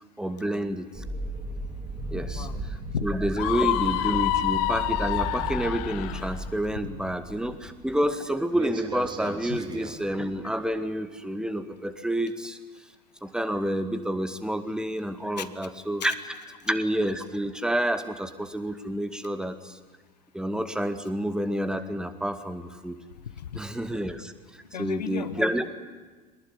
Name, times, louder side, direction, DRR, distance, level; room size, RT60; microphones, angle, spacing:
voice 1, 0.2-1.0 2.1-2.5 3.0-12.6 13.2-16.1 16.6-19.8 20.3-23.0 23.5-24.3 24.8-25.6, right 1 dB, 5° right, 10 dB, 1.9 m, -29 dB
sound 1, 0.9-8.2 8.5-9.9, right 2 dB, 20° right, 3.2 m, -36 dB
voice 2, 2.1-2.6 2.9-3.1 6.9-7.0 9.5-9.6 15.4-15.5 16.0-16.1 23.2-23.6 24.7-25.7, left 8 dB, 75° left, 14 dB, 1.1 m, -35 dB
Screaming, 3.4-6.3, left 14 dB, 55° left, 1.0 m, -27 dB
22.5 x 20.0 x 9.9 m, 1.4 s
figure-of-eight pair, 70°, 21 cm